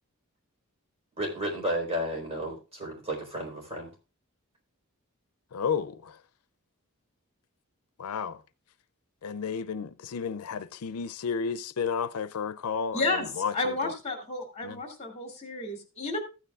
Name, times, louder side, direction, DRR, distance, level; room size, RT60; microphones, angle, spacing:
voice 1, 1.2-3.9, equal, 30° right, 4.2 m, -32 dB
voice 2, 5.5-6.2 8.0-8.4 9.2-13.9 14.6-14.8, left 6 dB, 85° left, 0.5 m, -32 dB
voice 3, 12.9-16.2, left 2 dB, 30° left, 2.5 m, -31 dB
14.5 x 9.2 x 2.4 m
head